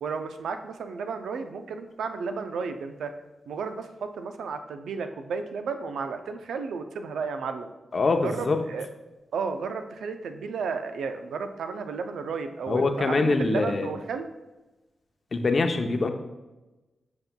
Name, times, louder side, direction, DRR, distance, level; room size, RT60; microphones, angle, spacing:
voice 1, 0.0-3.1 3.5-7.7 8.2-8.9 9.3-14.3, right 5 dB, 85° right, 8 dB, 0.4 m, -33 dB
voice 2, 7.9-8.6 12.7-13.9 15.3-16.1, left 3 dB, 55° left, 6 dB, 0.6 m, -24 dB
7.9 x 5.3 x 2.2 m, 1.1 s
supercardioid pair, 45°, 0 cm